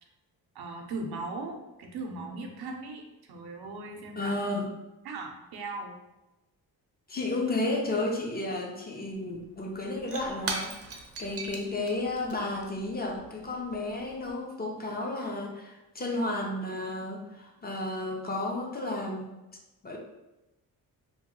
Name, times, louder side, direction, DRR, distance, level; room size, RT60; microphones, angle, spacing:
voice 1, 0.5-4.3 5.0-6.0, right 3 dB, 85° right, 2 dB, 0.6 m, -38 dB
voice 2, 4.2-4.7 7.1-19.3 19.8-20.0, left 2 dB, 25° left, 0 dB, 0.5 m, -32 dB
Shatter / Crushing, 9.1-9.2 9.4-14.3, right 3 dB, 40° right, 0.5 m, -40 dB
3.0 x 2.2 x 2.9 m, 1.0 s
cardioid pair, 100°, 37 cm